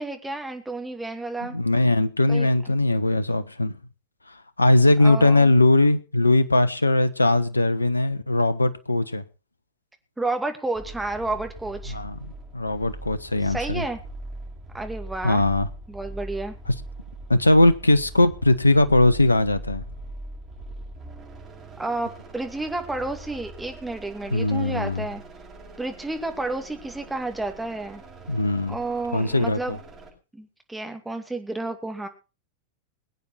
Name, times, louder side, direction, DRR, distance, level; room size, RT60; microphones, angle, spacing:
voice 1, 0.0-1.6 2.3-2.7 5.0-5.5 10.2-12.0 13.4-14.0 14.7-15.4 15.9-16.5 21.8-25.2 25.8-28.0 28.7-29.8 30.3-32.1, right 2 dB, 5° right, 2.5 m, -31 dB
voice 2, 1.5-3.8 4.6-9.2 11.9-12.1 12.5-13.8 15.2-15.7 17.3-19.8 24.3-25.1 28.3-28.8 29.1-29.8, left 2 dB, 80° left, 1.1 m, -20 dB
sound 1, 10.7-30.1, right 2 dB, 20° right, 7.3 m, -41 dB
22.0 x 9.2 x 4.3 m
figure-of-eight pair, 90°, 0 cm